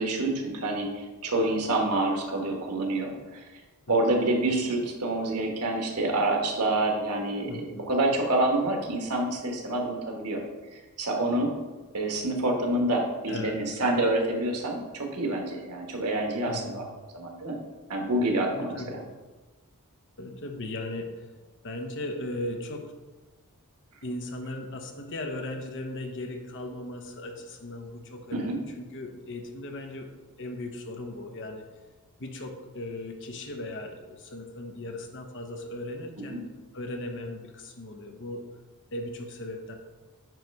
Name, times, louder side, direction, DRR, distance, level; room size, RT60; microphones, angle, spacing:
voice 1, 0.0-3.4 3.9-10.4 10.7-11.5 11.9-16.8 17.1-17.6 17.9-19.0 28.3-28.6 36.3-36.4, right 2 dB, 90° right, 1 dB, 1.4 m, -27 dB
voice 2, 7.5-7.9 13.3-13.8 16.5-16.8 18.5-19.0 20.2-21.3 21.6-22.9 24.0-30.1 30.4-31.7 32.2-36.4 36.7-38.5 38.9-39.7, left 1 dB, 55° left, 4 dB, 1.0 m, -37 dB
9.2 x 3.2 x 5.3 m, 1.2 s
head